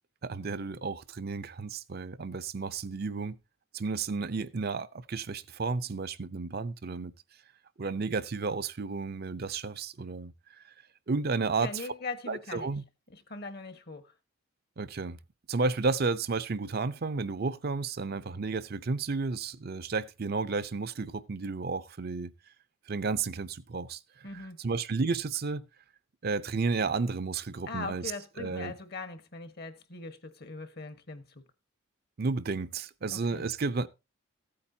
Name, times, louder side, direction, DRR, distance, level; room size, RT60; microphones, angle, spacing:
voice 1, 0.2-3.4 3.7-7.1 7.8-10.7 11.1-11.9 12.3-12.8 14.8-15.2 15.5-22.3 22.9-25.6 26.2-28.1 28.4-28.7 32.2-33.9, right 4 dB, 45° right, 0.5 m, -32 dB
voice 2, 11.6-12.7 13.3-14.0 24.2-24.6 27.7-31.2 33.1-33.5, left 3 dB, 50° left, 1.3 m, -40 dB
15.0 x 8.6 x 2.7 m
head